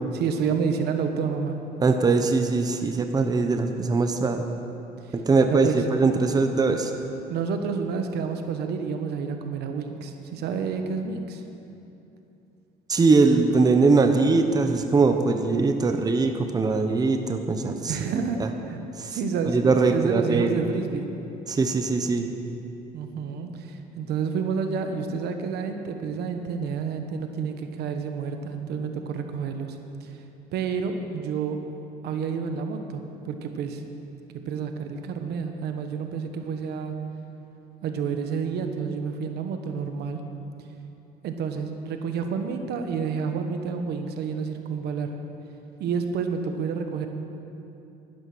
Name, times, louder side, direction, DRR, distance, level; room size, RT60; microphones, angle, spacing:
voice 1, 0.1-1.6 5.5-5.8 7.3-11.4 17.9-18.8 19.1-19.6 19.9-21.1 22.9-30.1 30.5-31.6 32.0-33.8 34.5-36.9 37.8-40.2 41.2-45.1 45.8-47.1, right 6 dB, 75° right, 6 dB, 1.2 m, -29 dB
voice 2, 1.8-4.4 5.1-6.9 12.9-18.0 19.0-19.2 19.5-20.5 21.5-22.3, right 3 dB, 20° right, 6 dB, 0.8 m, -21 dB
11.5 x 11.5 x 6.1 m, 2.8 s
cardioid pair, 110°, 17 cm